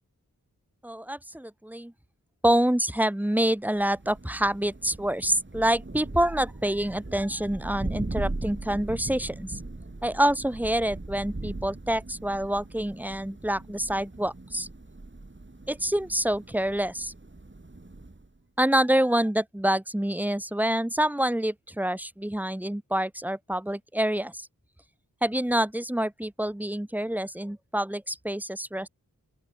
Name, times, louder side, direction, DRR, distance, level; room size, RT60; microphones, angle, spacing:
voice 1, 0.8-1.9 2.4-9.5 10.0-14.7 15.7-17.1 18.6-24.5 25.2-28.9, right 1 dB, 5° right, 0.8 m, -27 dB
Thunder, 3.8-18.4, right 2 dB, 35° right, 3.8 m, -39 dB
open air
wide cardioid pair, 70°, 34 cm